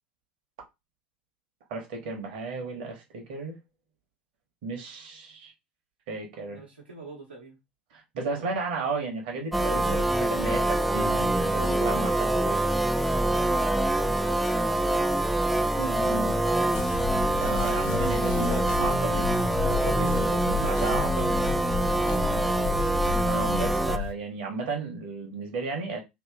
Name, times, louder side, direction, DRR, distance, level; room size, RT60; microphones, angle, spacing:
voice 1, 1.7-3.6 4.6-5.5 6.1-6.6 7.9-12.7 15.8-16.4 17.3-21.3 23.2-26.0, right 3 dB, 60° right, 1.1 m, -34 dB
voice 2, 6.5-7.6 13.7-17.0 22.1-23.0, right 3 dB, 85° right, 1.1 m, -45 dB
sound 1, 9.5-24.0, right 1 dB, ahead, 0.3 m, -25 dB
sound 2, 16.7-24.1, left 11 dB, 60° left, 0.8 m, -34 dB
3.0 x 2.8 x 3.5 m
figure-of-eight pair, 75°, 5 cm